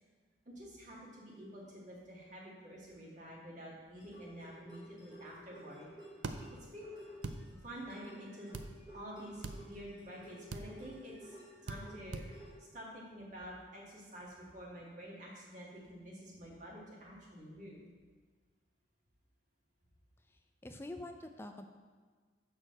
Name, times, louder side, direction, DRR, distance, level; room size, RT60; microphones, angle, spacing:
voice 1, 0.4-5.9 6.3-6.4 6.7-6.9 7.6-8.5 8.9-11.3 11.6-12.2 12.6-17.9, equal, 40° right, -4 dB, 1.7 m, -49 dB
sound 1, 4.0-12.5, equal, 25° right, 1.6 m, -54 dB
sound 2, 6.2-6.4 7.2-7.4 8.5-8.7 9.4-9.6 10.5-10.7 11.7-11.8 12.1-12.3, right 3 dB, 90° right, 0.5 m, -40 dB
voice 2, 20.3-21.7, left 1 dB, 15° left, 6 dB, 0.4 m, -46 dB
6.1 x 4.7 x 6.4 m, 1.5 s
head